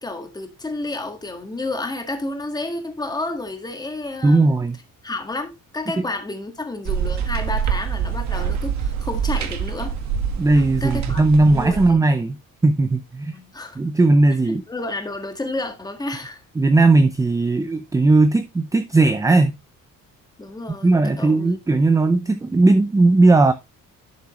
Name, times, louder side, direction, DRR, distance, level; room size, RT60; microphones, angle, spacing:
voice 1, 0.0-4.7 5.0-10.0 10.8-12.0 13.3-13.8 14.5-16.4 20.4-21.6, left 2 dB, 10° left, 1.8 m, -31 dB
voice 2, 4.2-4.8 6.0-6.1 10.4-12.4 12.6-13.3 13.8-14.6 16.6-19.5 20.7-23.5, right 2 dB, 10° right, 0.6 m, -17 dB
sound 1, 6.9-11.9, right 8 dB, 55° right, 1.6 m, -25 dB
11.5 x 6.6 x 3.1 m
cardioid pair, 175°, 33 cm